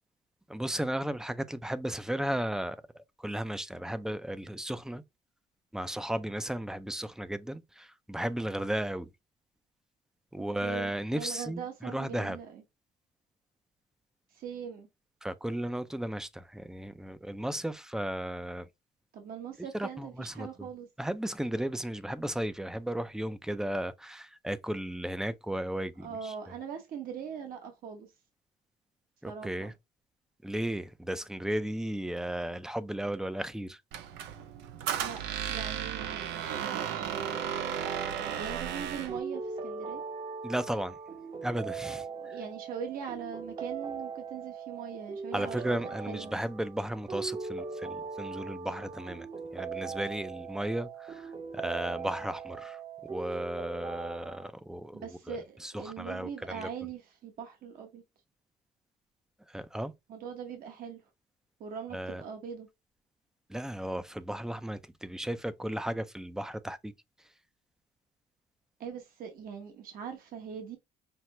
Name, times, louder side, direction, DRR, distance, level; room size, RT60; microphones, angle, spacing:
voice 1, 0.5-2.8 3.2-5.0 5.7-9.1 10.3-12.4 15.2-18.7 19.7-20.7 21.0-26.3 29.2-29.7 30.4-33.8 40.4-41.0 41.4-42.3 45.3-49.3 49.5-52.8 53.1-56.7 59.5-59.9 61.9-62.2 63.5-66.9, right 1 dB, 5° right, 0.4 m, -35 dB
voice 2, 10.6-12.6 14.3-14.9 19.1-20.9 26.0-28.1 29.3-29.7 35.0-35.2 35.5-37.2 38.4-40.0 41.9-45.8 46.1-46.4 54.9-58.0 60.1-61.0 61.6-62.7 68.8-70.8, right 7 dB, 60° right, 1.0 m, -41 dB
Squeak, 33.9-39.2, right 9 dB, 90° right, 0.6 m, -34 dB
sound 1, 37.1-54.5, right 5 dB, 30° right, 0.8 m, -40 dB
5.8 x 2.0 x 3.1 m
cardioid pair, 110°, 17 cm